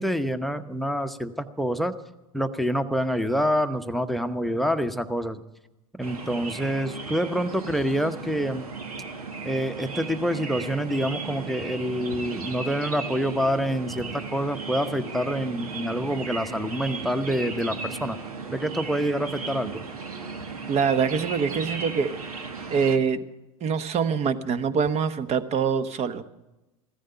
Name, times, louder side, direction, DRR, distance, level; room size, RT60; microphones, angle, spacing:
voice 1, 0.0-1.9 2.3-5.4 6.0-8.6 9.4-18.2 18.5-19.8, equal, ahead, 11 dB, 0.9 m, -27 dB
sound 1, 6.0-23.0, right 4 dB, 85° right, 1.4 m, -36 dB
voice 2, 20.7-22.1 22.7-23.2 23.6-26.2, right 6 dB, 35° right, 12 dB, 1.1 m, -24 dB
15.5 x 14.0 x 5.7 m, 0.99 s
hypercardioid pair, 85°, 18 cm